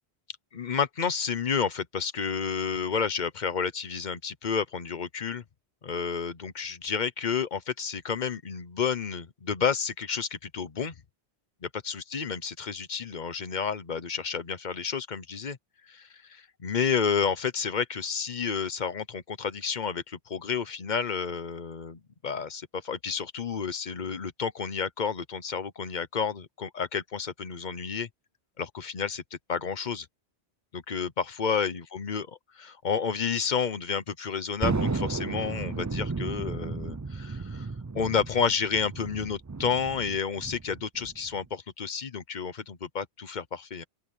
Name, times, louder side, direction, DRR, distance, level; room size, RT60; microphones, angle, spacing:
voice 1, 0.5-5.4 5.8-10.9 11.6-15.6 15.9-28.1 28.6-29.2 29.5-30.1 30.7-32.3 32.6-37.7 37.9-43.8, left 6 dB, 45° left, 1.1 m, -30 dB
Thunder, 34.6-41.5, right 3 dB, 25° right, 0.4 m, -33 dB
open air
omnidirectional pair, 1.1 m